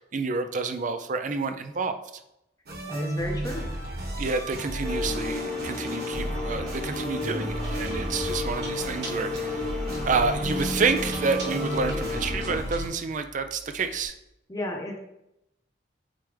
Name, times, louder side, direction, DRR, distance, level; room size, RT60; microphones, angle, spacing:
voice 1, 0.0-2.0 4.2-9.6 10.0-14.1, right 4 dB, 45° right, 8 dB, 0.5 m, -29 dB
sound 1, 2.7-12.9, right 1 dB, 60° right, 1.4 m, -33 dB
voice 2, 2.9-3.7 14.5-15.0, left 1 dB, 20° left, 1 dB, 0.8 m, -33 dB
sound 2, 4.8-12.6, left 3 dB, 5° left, 1.8 m, -33 dB
Chewing mastication, 6.8-14.0, right 1 dB, 85° right, 1.4 m, -44 dB
8.9 x 3.3 x 3.4 m, 0.84 s
head